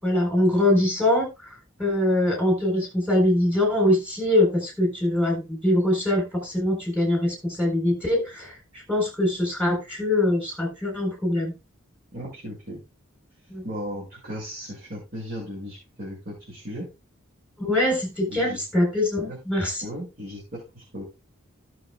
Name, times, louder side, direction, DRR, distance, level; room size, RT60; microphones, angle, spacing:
voice 1, 0.0-11.5 13.5-13.6 17.6-19.9, left 1 dB, 5° right, 0 dB, 4.0 m, -23 dB
voice 2, 12.1-12.8 13.6-16.9 18.3-18.6 19.3-19.4 19.8-21.0, equal, 50° right, -4 dB, 5.8 m, -36 dB
18.0 x 6.5 x 2.3 m, 0.26 s
head